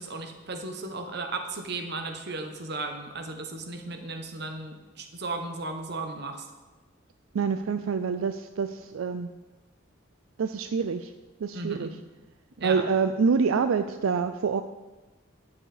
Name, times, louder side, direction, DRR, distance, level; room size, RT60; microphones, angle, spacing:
voice 1, 0.0-6.5 11.5-11.9 12.6-12.9, right 3 dB, 55° right, 6 dB, 1.1 m, -35 dB
voice 2, 7.3-9.3 10.4-11.1 11.4-11.9 12.6-14.6, right 5 dB, 80° right, 9 dB, 0.4 m, -26 dB
9.9 x 7.1 x 5.0 m, 1.2 s
head